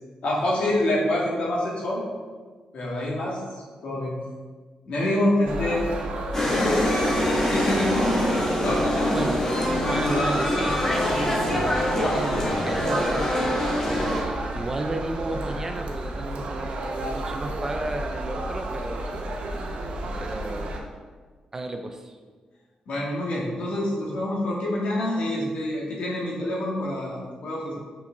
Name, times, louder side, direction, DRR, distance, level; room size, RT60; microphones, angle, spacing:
voice 1, 0.2-2.0 2.7-4.1 4.8-5.9 6.3-6.9 7.4-8.3 8.6-9.2 22.9-27.7, left 1 dB, 60° left, -4 dB, 1.6 m, -26 dB
sound 1, 5.5-20.8, right 1 dB, 60° right, 0.7 m, -32 dB
sound 2, 6.3-14.2, left 1 dB, 20° left, 1.0 m, -24 dB
voice 2, 9.1-9.5 9.9-11.7 12.0-19.3 20.2-20.7 21.5-22.2, right 2 dB, 20° right, 5 dB, 0.4 m, -33 dB
5.7 x 5.3 x 3.7 m, 1.5 s
wide cardioid pair, 175°, 2 cm